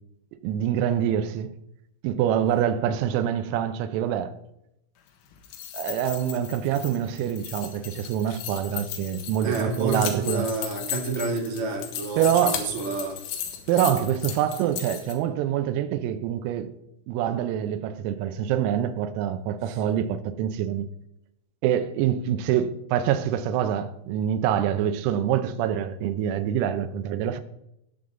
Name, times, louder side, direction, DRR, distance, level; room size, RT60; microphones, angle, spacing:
voice 1, 0.4-1.5 2.0-4.3 5.7-10.5 12.2-12.7 13.7-16.7 17.1-20.9 21.6-27.4, right 10 dB, 90° right, 3.6 m, -25 dB
sound 1, 5.3-15.1, left 10 dB, 80° left, 4.1 m, -36 dB
voice 2, 9.4-13.2, right 3 dB, 60° right, 1.5 m, -29 dB
19.0 x 7.1 x 3.8 m
omnidirectional pair, 6.0 m